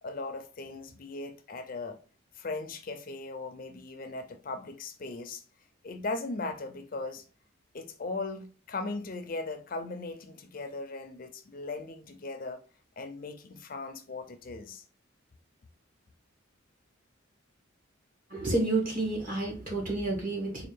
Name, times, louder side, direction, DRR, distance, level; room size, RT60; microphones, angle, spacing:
voice 1, 0.0-2.0 2.4-5.4 5.8-7.2 7.7-12.6 13.0-14.8, left 3 dB, 40° left, 0.4 m, -38 dB
voice 2, 18.3-20.7, right 2 dB, 40° right, 1.5 m, -30 dB
4.0 x 2.5 x 3.2 m
head